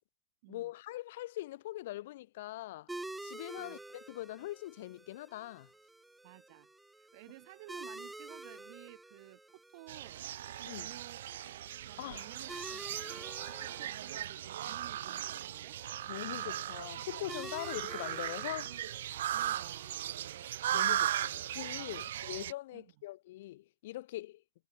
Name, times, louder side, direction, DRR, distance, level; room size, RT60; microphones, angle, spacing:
voice 1, 0.5-5.7 10.6-10.9 12.0-12.3 16.1-18.7 20.7-24.4, left 16 dB, 65° left, 2.9 m, -42 dB
sound 1, 2.9-22.0, right 2 dB, 5° right, 2.5 m, -50 dB
voice 2, 6.2-6.7 7.0-10.2 10.8-11.2 11.8-13.5 13.8-15.8 19.3-20.0 21.9-22.0 22.7-22.9, right 22 dB, 55° right, 4.6 m, -54 dB
sound 2, 9.9-22.5, right 12 dB, 80° right, 0.3 m, -37 dB
supercardioid pair, 150°, 0 cm